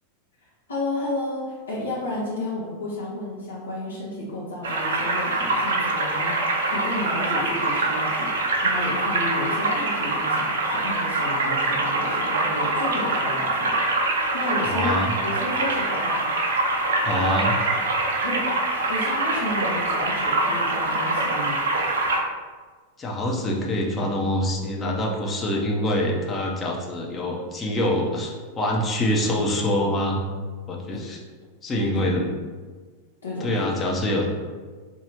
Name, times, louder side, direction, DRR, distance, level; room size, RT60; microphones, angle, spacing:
voice 1, 0.7-16.3 18.2-21.6 30.9-31.0 31.8-32.1 33.2-33.8, left 1 dB, 70° left, -7 dB, 0.8 m, -32 dB
sound 1, 4.6-22.2, right 2 dB, 60° right, 0.6 m, -24 dB
voice 2, 14.6-15.1 17.0-17.6 23.0-30.2 30.7-31.2 31.6-32.3 33.4-34.3, left 1 dB, 20° left, -1 dB, 0.6 m, -25 dB
3.9 x 2.7 x 2.9 m, 1.5 s
figure-of-eight pair, 90°, 0 cm